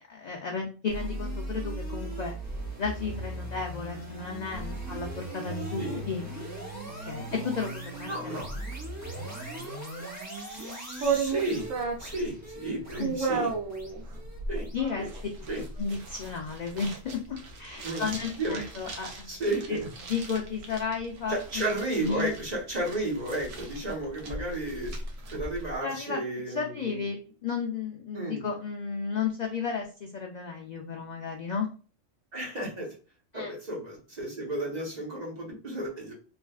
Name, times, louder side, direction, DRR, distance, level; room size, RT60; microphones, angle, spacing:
voice 1, 0.0-2.3 2.8-6.3 7.0-8.4 13.0-13.1 14.7-15.1 15.8-19.1 19.7-21.6 22.0-22.3 25.8-26.2 26.5-31.7 33.3-33.5, left 5 dB, 65° left, 1 dB, 0.4 m, -33 dB
sound 1, 0.9-16.1, right 1 dB, 15° right, 0.7 m, -38 dB
voice 2, 8.1-8.5 10.2-13.5 14.5-14.7 15.0-15.1 15.5-15.6 17.8-18.7 19.3-19.9 21.3-24.9 25.3-27.1 28.1-28.4 32.3-32.9 33.3-36.1, right 1 dB, 35° right, -3 dB, 1.1 m, -33 dB
sound 2, 11.0-25.8, right 4 dB, 90° right, 1.1 m, -35 dB
3.3 x 2.3 x 2.3 m, 0.36 s
omnidirectional pair, 1.3 m